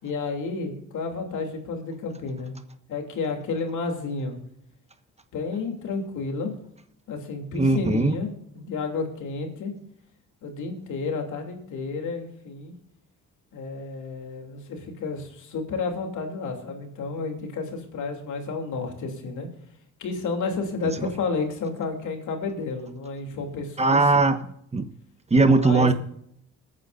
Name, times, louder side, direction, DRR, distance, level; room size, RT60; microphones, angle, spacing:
voice 1, 0.0-2.5 2.9-4.4 5.3-6.5 7.1-9.7 10.4-12.7 13.5-19.5 20.0-24.0 25.6-25.9, left 4 dB, 75° left, 3 dB, 3.0 m, -31 dB
voice 2, 7.5-8.1 23.8-24.4 24.7-24.8 25.3-25.9, right 3 dB, 20° right, 9 dB, 1.3 m, -19 dB
21.5 x 9.6 x 2.6 m, 0.70 s
cardioid pair, 90°, 30 cm